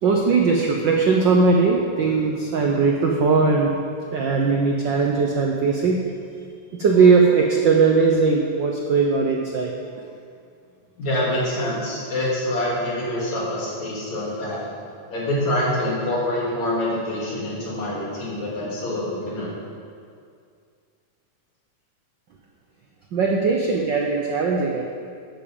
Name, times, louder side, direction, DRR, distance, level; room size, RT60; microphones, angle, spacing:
voice 1, 0.0-3.8 4.1-6.0 6.7-9.7 23.1-24.8, right 4 dB, 85° right, 0 dB, 1.0 m, -19 dB
voice 2, 11.0-14.6 15.1-19.5, left 1 dB, 70° left, -5 dB, 4.1 m, -26 dB
10.5 x 8.7 x 7.1 m, 2.3 s
omnidirectional pair, 3.3 m